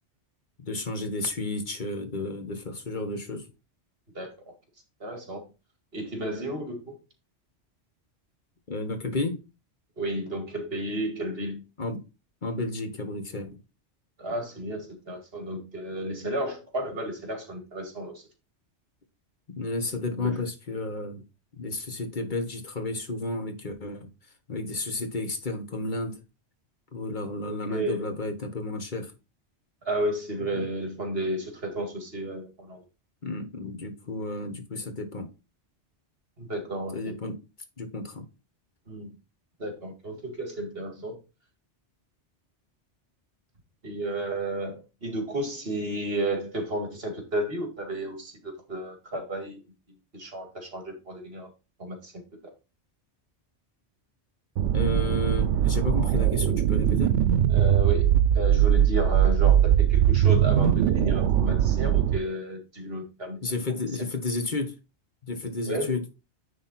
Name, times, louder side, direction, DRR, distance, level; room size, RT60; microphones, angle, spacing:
voice 1, 0.6-3.5 8.7-9.4 11.8-12.0 12.4-13.6 19.6-21.2 21.6-24.1 24.5-26.2 26.9-29.1 30.5-30.6 33.2-35.3 36.9-37.4 37.8-38.3 54.7-57.2 63.4-64.8 65.3-66.1, left 2 dB, 45° left, 1.4 m, -32 dB
voice 2, 5.0-5.4 5.9-7.0 10.0-11.6 14.2-18.1 20.1-20.4 27.5-28.1 29.9-32.8 36.4-37.0 38.9-39.1 39.6-41.2 43.8-49.6 50.1-51.5 51.8-52.1 57.5-58.1 58.3-63.4 63.7-64.1 65.7-65.9, right 1 dB, 55° right, 2.3 m, -32 dB
sound 1, 54.6-62.2, right 10 dB, 85° right, 0.9 m, -21 dB
9.7 x 3.7 x 4.2 m
omnidirectional pair, 1.2 m